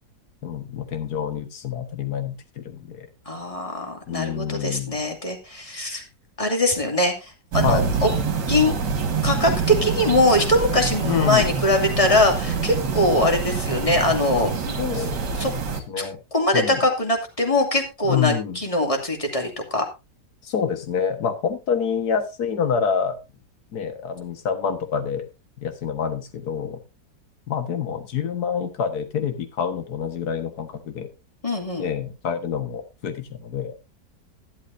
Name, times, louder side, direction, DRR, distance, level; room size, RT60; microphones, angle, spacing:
voice 1, 0.4-3.1 4.1-5.0 7.6-7.9 11.0-11.5 14.8-15.2 15.9-16.2 16.5-16.8 18.1-18.6 20.4-23.2 23.7-25.3 25.6-26.8 27.5-31.1 31.8-33.7, left 7 dB, 65° left, 8 dB, 2.0 m, -27 dB
voice 2, 3.3-6.0 6.4-8.1 8.5-8.8 9.2-15.1 15.3-15.5 16.0-19.8 31.4-31.9, left 1 dB, 20° left, 2 dB, 2.5 m, -22 dB
sound 1, 7.5-15.8, right 5 dB, 70° right, 2.2 m, -26 dB
13.0 x 11.5 x 2.7 m, 0.26 s
omnidirectional pair, 1.9 m